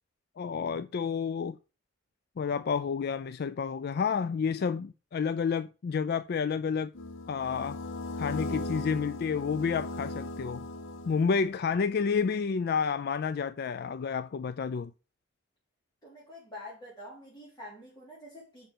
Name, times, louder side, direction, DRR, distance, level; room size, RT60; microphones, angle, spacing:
voice 1, 0.4-1.6 2.4-6.9 7.3-7.8 8.2-10.7 11.1-14.9, left 6 dB, 55° left, 0.4 m, -30 dB
sound 1, 6.9-11.6, left 2 dB, 85° left, 0.8 m, -38 dB
voice 2, 16.0-18.7, left 1 dB, 20° left, 3.9 m, -47 dB
6.7 x 5.3 x 5.8 m
head